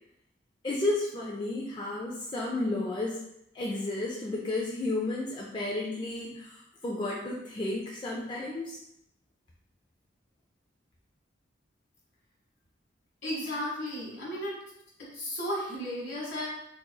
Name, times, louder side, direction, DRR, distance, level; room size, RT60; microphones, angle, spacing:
voice 1, 0.6-3.2 3.5-8.8, left 2 dB, 25° left, -3 dB, 0.3 m, -32 dB
voice 2, 13.2-14.6 15.0-16.5, equal, 65° left, -5 dB, 1.4 m, -34 dB
3.8 x 2.9 x 2.2 m, 0.79 s
head